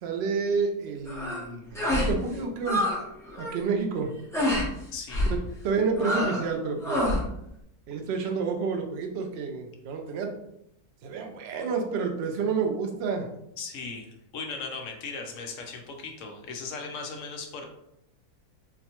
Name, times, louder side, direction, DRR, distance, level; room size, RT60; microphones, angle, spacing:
voice 1, 0.0-2.8 3.4-4.1 5.2-5.4 5.6-7.0 7.9-10.4 11.0-13.3, right 5 dB, 70° right, 3 dB, 0.6 m, -29 dB
sound 1, 1.1-1.4 1.7-2.1 2.4-3.0 3.3-3.6 4.3-4.7 5.1-5.4 6.0-6.5 6.8-7.2, left 1 dB, 5° left, 0.5 m, -26 dB
voice 2, 4.9-5.3 13.6-17.6, left 4 dB, 65° left, 2 dB, 0.9 m, -37 dB
4.2 x 2.1 x 2.8 m, 0.80 s
omnidirectional pair, 1.6 m